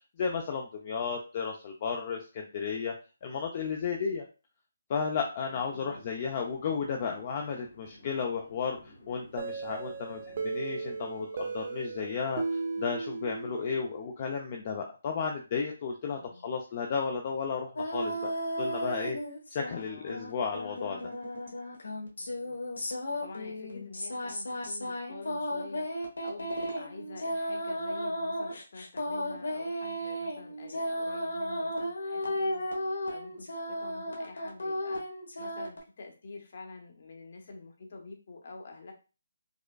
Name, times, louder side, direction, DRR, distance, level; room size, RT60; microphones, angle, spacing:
voice 1, 0.2-2.9 3.2-4.3 4.9-18.3 18.6-19.2 19.5-21.1, left 5 dB, 30° left, 2 dB, 0.4 m, -33 dB
voice 2, 5.4-6.0 16.1-16.5 19.6-20.2 22.2-22.7 23.2-25.9 26.2-32.6 33.1-35.0 35.4-38.9, left 3 dB, 50° left, 3 dB, 0.9 m, -47 dB
sound 1, 5.9-11.0, left 1 dB, 65° left, 1.3 m, -55 dB
sound 2, 9.4-14.0, right 4 dB, 40° right, 0.5 m, -36 dB
sound 3, 17.8-19.8 20.1-35.8, equal, 90° left, 1.1 m, -34 dB
4.8 x 2.2 x 2.2 m, 0.32 s
hypercardioid pair, 170°, 0 cm